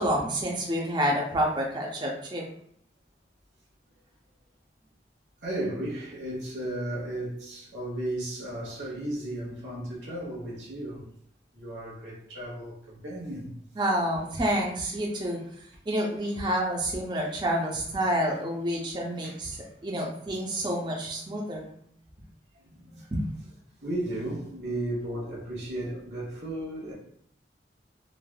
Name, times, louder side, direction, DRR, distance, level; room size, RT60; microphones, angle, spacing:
voice 1, 0.0-2.4 13.8-15.4 15.9-21.7 23.1-23.2, equal, 25° right, 0.4 m, -28 dB
voice 2, 5.4-11.1 11.5-13.5 19.2-19.4 22.5-22.6 22.9-23.1 23.8-26.9, right 1 dB, 85° right, 1.1 m, -34 dB
3.2 x 2.3 x 2.3 m
head